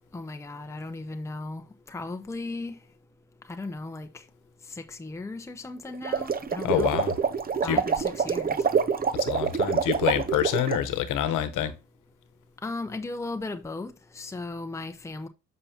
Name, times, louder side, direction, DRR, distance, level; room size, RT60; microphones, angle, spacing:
voice 1, 0.1-2.7 3.5-4.2 4.7-7.0 7.6-8.6 12.6-15.3, left 2 dB, 10° left, 0.8 m, -36 dB
sound 1, 5.9-10.8, right 6 dB, 30° right, 0.6 m, -26 dB
voice 2, 6.6-7.1 7.6-7.8 9.1-11.7, left 11 dB, 85° left, 1.0 m, -27 dB
7.7 x 5.8 x 2.8 m
cardioid pair, 90°, 30 cm